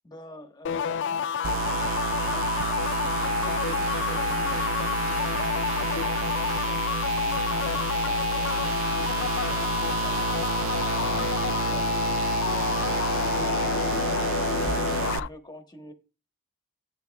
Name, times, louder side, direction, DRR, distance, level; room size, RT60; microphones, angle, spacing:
voice 1, 0.0-6.8 7.2-10.3 14.9-15.9, left 1 dB, 20° left, 6 dB, 1.1 m, -48 dB
sound 1, 0.6-15.3, left 7 dB, 55° left, 0.3 m, -28 dB
sound 2, 1.4-15.2, right 8 dB, 60° right, 0.4 m, -30 dB
Guitar, 3.4-12.2, right 1 dB, 25° right, 2.9 m, -48 dB
11.0 x 9.2 x 2.3 m, 0.31 s
head